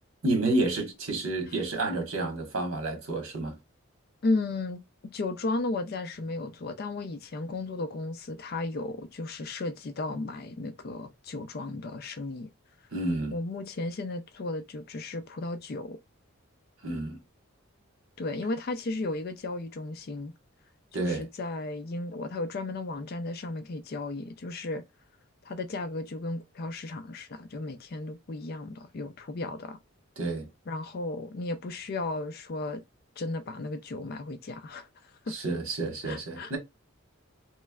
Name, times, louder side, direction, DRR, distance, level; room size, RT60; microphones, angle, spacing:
voice 1, 0.2-3.6 12.9-13.3 16.8-17.2 20.9-21.2 30.2-30.5 35.3-36.6, right 2 dB, 70° right, 1.3 m, -30 dB
voice 2, 4.2-4.8 5.1-12.5 13.3-16.0 18.2-20.3 20.9-24.8 25.4-29.8 30.7-32.8 33.2-35.3 36.0-36.6, left 2 dB, 45° left, 0.4 m, -34 dB
3.2 x 3.0 x 2.3 m
head